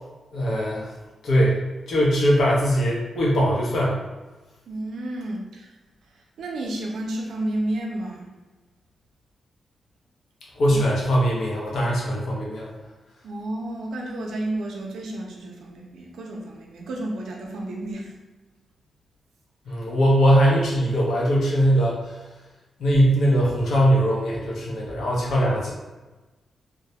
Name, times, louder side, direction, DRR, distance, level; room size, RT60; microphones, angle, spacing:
voice 1, 0.3-0.9 1.2-1.6 1.9-4.0 10.5-12.7 19.7-22.2 22.8-25.7, equal, 80° left, -4 dB, 0.7 m, -21 dB
voice 2, 4.7-5.7 6.4-8.3 10.7-10.8 13.2-18.1, right 1 dB, 85° right, 0 dB, 0.5 m, -31 dB
2.2 x 2.1 x 2.7 m, 1.2 s
cardioid pair, 70°, 0 cm